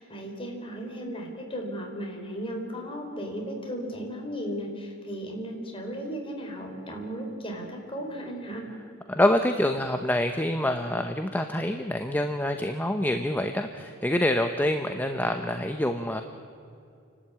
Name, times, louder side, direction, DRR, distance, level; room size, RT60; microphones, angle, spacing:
voice 1, 0.0-8.7, equal, 25° left, 1 dB, 4.1 m, -35 dB
voice 2, 9.1-16.2, left 1 dB, 10° left, 6 dB, 0.8 m, -26 dB
30.0 x 12.5 x 8.6 m, 2.5 s
head